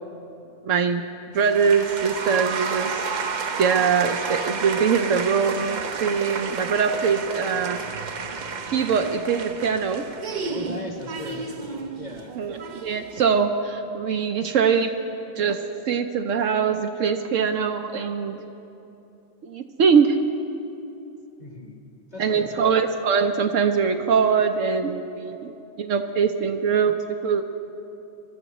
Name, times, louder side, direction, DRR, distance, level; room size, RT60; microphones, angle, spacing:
voice 1, 0.6-1.0 1.3-3.0 3.6-7.8 8.7-10.1 12.4-14.9 15.4-18.4 19.4-20.2 22.2-25.5 25.8-27.5, right 6 dB, 70° right, 6 dB, 0.9 m, -22 dB
sound 1, 1.3-13.3, right 5 dB, 50° right, 0.6 m, -31 dB
voice 2, 10.5-12.3 21.4-21.8 22.1-22.8, left 2 dB, 30° left, 1 dB, 1.3 m, -38 dB
24.0 x 13.0 x 3.0 m, 2.9 s
omnidirectional pair, 1.5 m